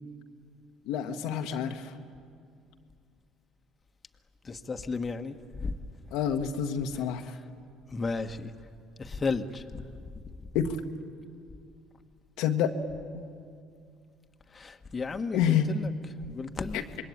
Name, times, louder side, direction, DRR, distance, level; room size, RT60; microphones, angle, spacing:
voice 1, 0.9-1.9 6.1-7.3 10.5-10.8 12.4-12.7 13.1-13.2 15.3-15.8 16.7-16.8, left 8 dB, 70° left, 5 dB, 1.3 m, -28 dB
voice 2, 4.4-5.7 7.9-8.5 9.0-9.8 14.5-15.9 16.3-16.8, left 4 dB, 30° left, 6 dB, 1.4 m, -33 dB
26.5 x 21.5 x 9.0 m, 2.3 s
hypercardioid pair, 55°, 0 cm